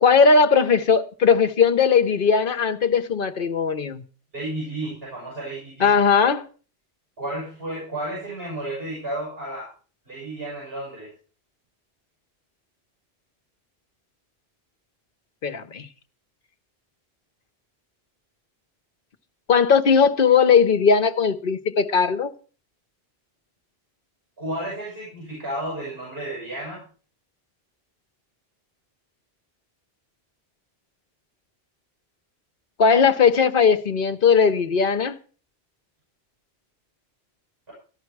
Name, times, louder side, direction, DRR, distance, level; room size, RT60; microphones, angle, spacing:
voice 1, 0.0-4.0 5.8-6.5 15.4-15.9 19.5-22.3 32.8-35.2, left 6 dB, 60° left, 1.0 m, -18 dB
voice 2, 4.3-6.0 7.2-9.7 10.1-11.1 24.4-26.8, right 1 dB, 65° right, 7.2 m, -32 dB
14.5 x 11.0 x 4.7 m
omnidirectional pair, 1.1 m